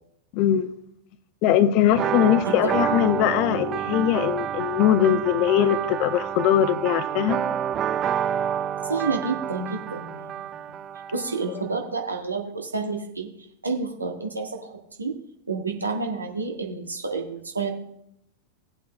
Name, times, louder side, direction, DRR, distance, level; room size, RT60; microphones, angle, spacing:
voice 1, 0.3-0.7 1.4-7.4, left 10 dB, 40° left, 13 dB, 0.8 m, -21 dB
sound 1, 1.9-11.5, right 9 dB, 30° right, 0.5 m, -29 dB
voice 2, 8.8-10.6 11.1-13.3 13.6-14.7 15.0-15.1 15.5-17.7, right 4 dB, 80° right, 2 dB, 1.8 m, -29 dB
18.5 x 8.1 x 2.4 m, 0.77 s
figure-of-eight pair, 90°, 0 cm